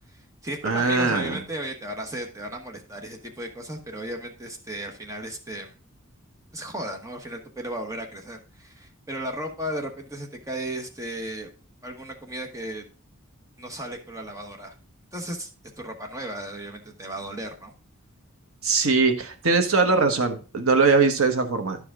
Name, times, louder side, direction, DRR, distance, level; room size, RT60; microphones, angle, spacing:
voice 1, 0.1-5.7 6.5-11.5 11.8-12.9 13.6-14.7 15.1-15.5 15.8-17.7, right 1 dB, 15° right, 2 dB, 1.2 m, -35 dB
voice 2, 0.6-1.4 18.6-21.8, right 4 dB, 75° right, 7 dB, 1.1 m, -21 dB
11.5 x 4.9 x 3.7 m, 0.36 s
head